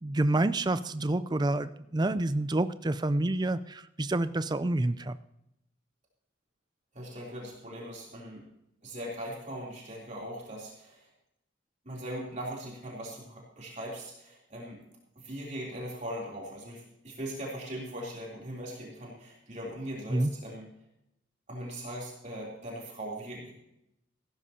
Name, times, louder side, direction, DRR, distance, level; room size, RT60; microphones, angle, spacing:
voice 1, 0.0-5.2 20.1-20.3, right 2 dB, 20° right, 13 dB, 0.4 m, -28 dB
voice 2, 6.9-8.5 8.8-11.1 11.8-14.8 15.1-20.7 21.5-23.5, equal, 40° right, -3 dB, 3.2 m, -40 dB
16.0 x 13.5 x 2.9 m, 0.82 s
head